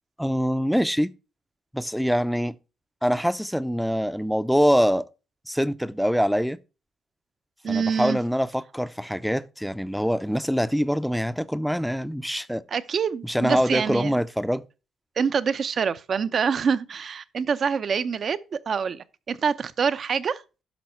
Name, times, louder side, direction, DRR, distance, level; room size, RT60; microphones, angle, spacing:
voice 1, 0.2-1.1 1.7-2.5 3.0-5.1 5.5-6.6 7.7-12.6 13.2-14.6, equal, ahead, 0.6 m, -24 dB
voice 2, 7.6-8.2 12.7-14.2 15.2-20.4, right 6 dB, 50° right, 0.7 m, -26 dB
10.5 x 6.1 x 4.4 m
cardioid pair, 90°, 0 cm